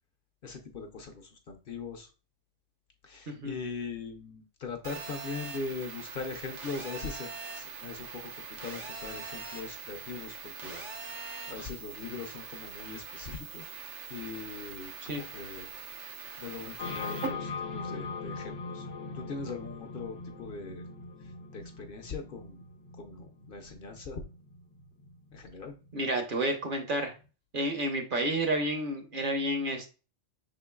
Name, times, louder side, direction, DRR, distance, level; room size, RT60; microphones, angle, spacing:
voice 1, 0.4-2.1 3.0-10.8 11.5-13.8 14.1-15.7 16.4-18.9 19.1-20.8 21.2-22.7 23.0-24.2 25.3-25.7, left 4 dB, 60° left, 5 dB, 0.7 m, -41 dB
Telephone, 4.8-17.3, right 5 dB, 80° right, 1.3 m, -42 dB
sound 1, 16.8-26.4, left 4 dB, 80° left, 1.0 m, -41 dB
voice 2, 25.9-27.1 27.5-29.9, right 1 dB, 50° right, 5 dB, 0.9 m, -30 dB
5.8 x 3.7 x 2.2 m, 0.34 s
omnidirectional pair, 1.2 m